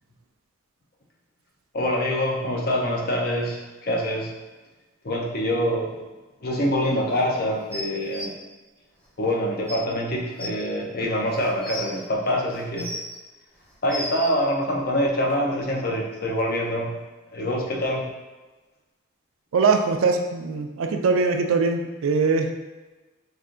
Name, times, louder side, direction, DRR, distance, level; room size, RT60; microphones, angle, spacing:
voice 1, 1.7-4.3 5.0-6.0 6.4-8.3 9.2-12.9 13.8-17.0 17.3-18.1, equal, 45° left, -1 dB, 0.6 m, -25 dB
sound 1, 7.7-8.2 9.3-9.4 9.7-9.8 10.4-10.5 11.3-11.9 12.5-13.2 13.6-14.3 15.3-15.4, left 1 dB, 5° left, 0.7 m, -34 dB
voice 2, 19.5-22.5, right 4 dB, 75° right, 5 dB, 0.4 m, -22 dB
3.3 x 2.5 x 3.7 m, 1.2 s
head